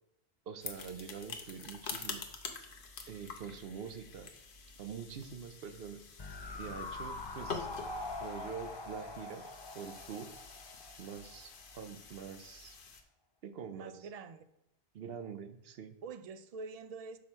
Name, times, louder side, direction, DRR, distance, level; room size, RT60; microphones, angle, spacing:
voice 1, 0.5-2.2 3.1-4.3 4.8-6.0 6.5-7.7 8.2-9.4 9.7-10.3 11.0-12.8 13.4-14.1 14.9-15.9, right 6 dB, 70° right, 10 dB, 0.9 m, -45 dB
sound 1, 0.6-13.0, left 4 dB, 60° left, 1.0 m, -47 dB
sound 2, 6.2-11.4 11.7-11.8, left 2 dB, 30° left, 0.6 m, -44 dB
voice 2, 13.7-14.4 16.0-17.2, right 4 dB, 50° right, 11 dB, 0.5 m, -45 dB
6.0 x 4.3 x 6.1 m, 0.81 s
omnidirectional pair, 1.1 m